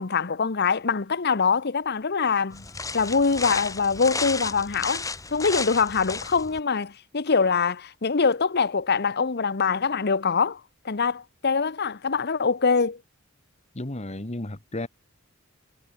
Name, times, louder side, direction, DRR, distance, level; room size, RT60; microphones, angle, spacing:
voice 1, 0.0-2.7 2.9-13.0, left 5 dB, 50° left, 0.9 m, -24 dB
sound 1, 2.5-6.6, left 4 dB, 15° left, 1.5 m, -33 dB
voice 2, 13.7-14.9, left 1 dB, 30° left, 1.7 m, -33 dB
head